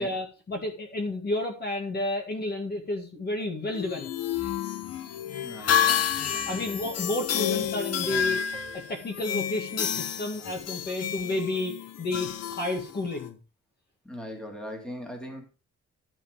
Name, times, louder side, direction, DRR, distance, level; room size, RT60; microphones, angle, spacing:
voice 1, 0.0-4.1 6.5-8.4 8.7-13.4, left 2 dB, 35° left, 2 dB, 2.0 m, -31 dB
sound 1, 3.7-13.3, left 9 dB, 60° left, 0.9 m, -30 dB
voice 2, 5.4-6.8 14.0-15.5, equal, 5° left, 2 dB, 2.2 m, -40 dB
Piano, 7.5-10.8, right 6 dB, 15° right, 2.1 m, -50 dB
12.0 x 5.5 x 4.9 m, 0.33 s
wide cardioid pair, 175°, 29 cm